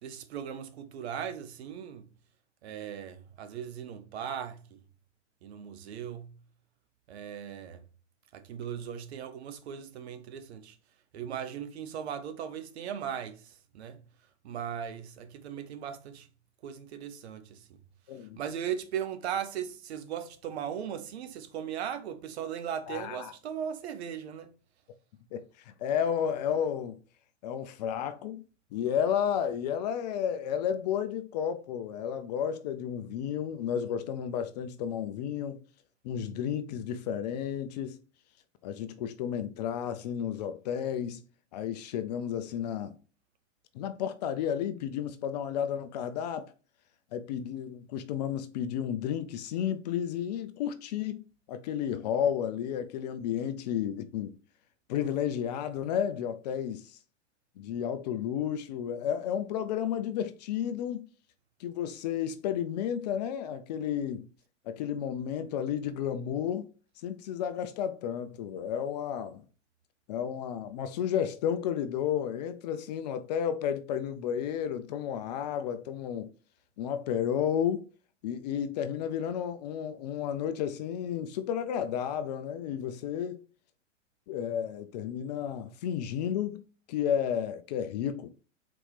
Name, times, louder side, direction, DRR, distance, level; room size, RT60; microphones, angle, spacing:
voice 1, 0.0-2.1 2.6-4.8 5.4-6.3 7.1-7.8 8.3-10.8 11.1-14.0 14.4-16.3 16.6-17.8 18.4-24.5, right 8 dB, 60° right, 0.8 m, -38 dB
voice 2, 18.1-18.4 22.9-23.3 25.3-25.4 25.8-27.0 27.4-28.4 28.7-35.6 36.0-38.0 38.6-41.2 41.5-43.0 43.7-46.5 47.1-54.3 54.9-57.0 57.6-61.1 61.6-64.3 64.7-66.7 67.0-69.4 70.1-76.3 76.8-77.8 78.2-83.4 84.3-88.3, left 9 dB, 35° left, 0.4 m, -32 dB
4.1 x 3.0 x 3.3 m
hypercardioid pair, 110°, 37 cm